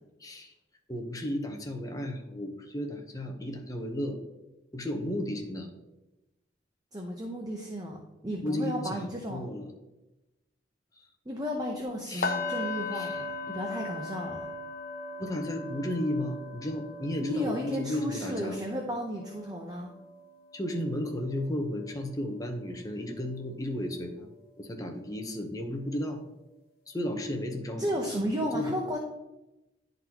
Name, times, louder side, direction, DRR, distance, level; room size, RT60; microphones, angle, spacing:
voice 1, 0.2-0.5 0.9-4.2 4.7-5.7 8.4-9.7 11.0-11.1 12.1-12.4 12.9-13.2 15.2-18.6 20.5-24.3 24.6-26.2 26.9-28.8, left 1 dB, 20° left, 3 dB, 0.8 m, -34 dB
voice 2, 6.9-8.0 8.2-9.4 11.3-14.5 17.2-19.9 27.8-29.0, equal, 20° right, 0 dB, 0.7 m, -33 dB
sound 1, 12.2-22.2 22.5-22.8 23.2-23.3, left 3 dB, 55° left, 0.7 m, -39 dB
11.0 x 4.0 x 2.9 m, 0.99 s
head